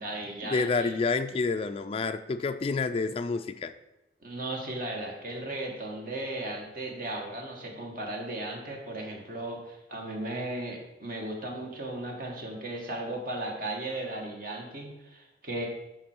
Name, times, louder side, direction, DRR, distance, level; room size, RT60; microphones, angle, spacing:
voice 1, 0.0-1.0 4.2-15.7, right 1 dB, 50° right, 0 dB, 1.6 m, -36 dB
voice 2, 0.5-3.7, left 4 dB, 30° left, 8 dB, 0.3 m, -28 dB
11.0 x 4.6 x 4.5 m, 0.95 s
head